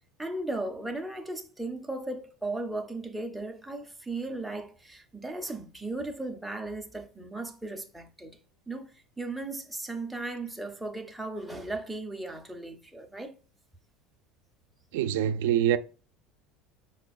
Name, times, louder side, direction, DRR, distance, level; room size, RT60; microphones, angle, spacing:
voice 1, 0.2-8.4 8.7-13.3, right 2 dB, ahead, 0.5 m, -36 dB
voice 2, 14.9-15.8, right 10 dB, 90° right, 0.4 m, -24 dB
5.3 x 4.3 x 2.3 m
cardioid pair, 170°, 0 cm